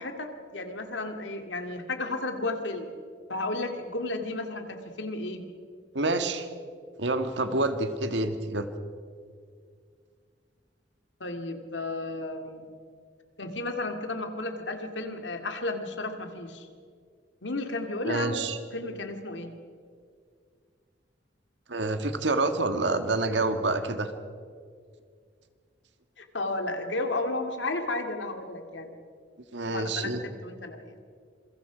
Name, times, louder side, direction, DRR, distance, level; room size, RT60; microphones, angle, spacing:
voice 1, 0.0-2.9 3.3-5.4 11.2-12.7 13.4-16.7 17.4-18.4 18.7-19.5 26.2-29.0 29.7-30.8, left 2 dB, 85° left, 5 dB, 2.4 m, -33 dB
voice 2, 5.9-6.5 7.0-8.7 18.0-18.6 21.7-24.1 29.5-30.2, right 2 dB, 75° right, 8 dB, 1.8 m, -27 dB
27.5 x 23.0 x 5.1 m, 2.1 s
head